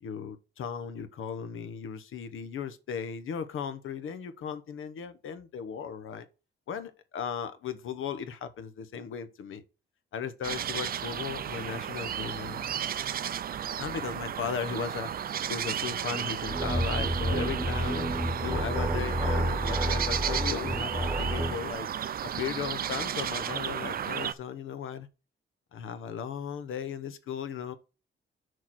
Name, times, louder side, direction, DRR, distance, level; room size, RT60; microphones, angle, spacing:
voice 1, 0.0-6.3 6.7-9.6 10.1-12.7 13.8-15.1 15.5-18.1 18.4-21.9 22.2-25.1 25.7-27.7, left 7 dB, 85° left, 1.0 m, -36 dB
sound 1, 10.4-24.3, right 9 dB, 45° right, 0.5 m, -33 dB
sound 2, 16.4-21.7, right 1 dB, 10° right, 1.1 m, -30 dB
6.4 x 4.7 x 6.0 m
wide cardioid pair, 165°, 21 cm